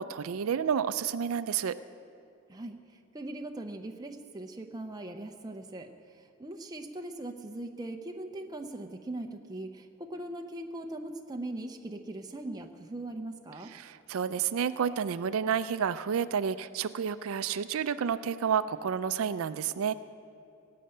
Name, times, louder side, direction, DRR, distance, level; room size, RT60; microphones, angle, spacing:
voice 1, 0.0-1.8 13.7-19.9, right 7 dB, 75° right, 14 dB, 0.4 m, -30 dB
voice 2, 2.5-13.7, right 1 dB, 20° right, 3 dB, 0.6 m, -40 dB
17.5 x 7.6 x 8.9 m, 2.6 s
head